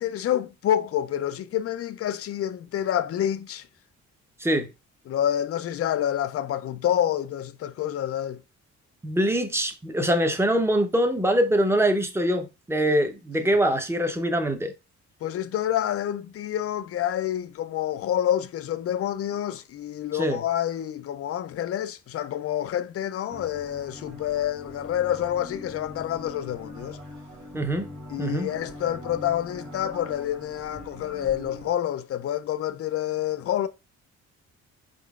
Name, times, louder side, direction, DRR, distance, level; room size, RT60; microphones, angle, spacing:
voice 1, 0.0-3.7 5.1-8.4 13.4-13.5 15.2-27.0 28.1-33.7, left 11 dB, 50° left, 0.4 m, -28 dB
voice 2, 9.0-14.7 20.2-20.4 27.5-27.9 28.2-28.5, equal, 10° right, 0.8 m, -23 dB
sound 1, 23.3-31.7, left 1 dB, 65° right, 1.6 m, -42 dB
4.3 x 3.8 x 2.4 m
cardioid pair, 90°, 30 cm